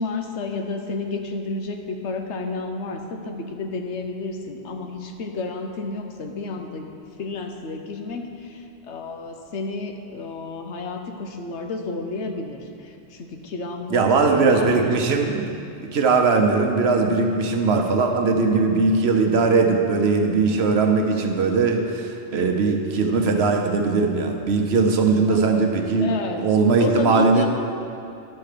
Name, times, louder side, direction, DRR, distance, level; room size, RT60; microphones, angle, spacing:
voice 1, 0.0-14.1 14.4-14.9 15.2-15.3 25.3-25.4 25.9-26.4 26.8-27.5, left 3 dB, 85° left, 4 dB, 1.1 m, -31 dB
voice 2, 13.9-15.6 15.9-26.1 26.4-27.5, right 4 dB, 70° right, 3 dB, 1.0 m, -20 dB
10.5 x 4.4 x 6.6 m, 2.5 s
omnidirectional pair, 1.1 m